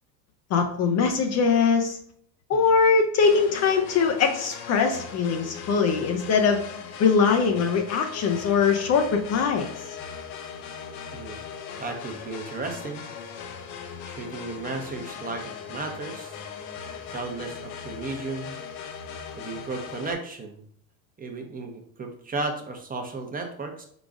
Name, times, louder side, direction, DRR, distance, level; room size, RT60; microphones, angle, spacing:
voice 1, 0.5-2.0 2.5-6.6 7.0-9.7, left 5 dB, 35° left, 5 dB, 0.6 m, -22 dB
sound 1, 3.2-20.1, left 6 dB, 65° left, 0.8 m, -39 dB
voice 2, 11.8-13.0 14.0-16.4 17.1-18.6 19.4-20.6 21.2-23.8, right 3 dB, 20° right, 3 dB, 0.8 m, -34 dB
4.7 x 3.9 x 2.4 m, 0.64 s
hypercardioid pair, 95°, 44 cm